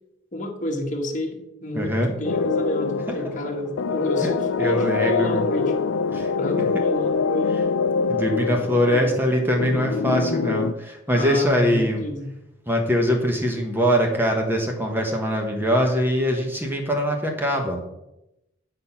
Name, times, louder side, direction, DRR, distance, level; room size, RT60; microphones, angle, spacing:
voice 1, 0.3-5.7 6.4-7.6 8.4-9.2 11.1-12.3, left 1 dB, 40° left, 2 dB, 1.3 m, -30 dB
voice 2, 1.7-2.1 3.1-3.2 4.2-5.4 6.1-6.3 8.1-12.0 12.7-17.9, equal, 10° right, 2 dB, 1.1 m, -22 dB
sound 1, 2.2-10.7, left 5 dB, 85° left, 0.4 m, -25 dB
9.2 x 4.1 x 5.7 m, 0.88 s
head